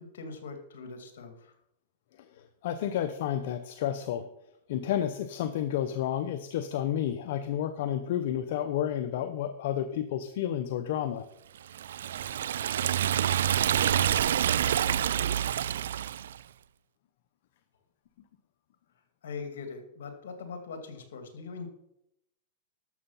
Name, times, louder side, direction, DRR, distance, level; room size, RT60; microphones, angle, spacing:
voice 1, 0.0-1.6 18.9-21.7, left 4 dB, 80° left, 6 dB, 2.4 m, -42 dB
voice 2, 2.6-4.3 4.7-11.3, left 10 dB, 65° left, 9 dB, 0.8 m, -31 dB
Liquid, 11.7-16.4, right 10 dB, 85° right, 0.4 m, -27 dB
12.0 x 7.0 x 5.6 m, 0.80 s
hypercardioid pair, 135°, 0 cm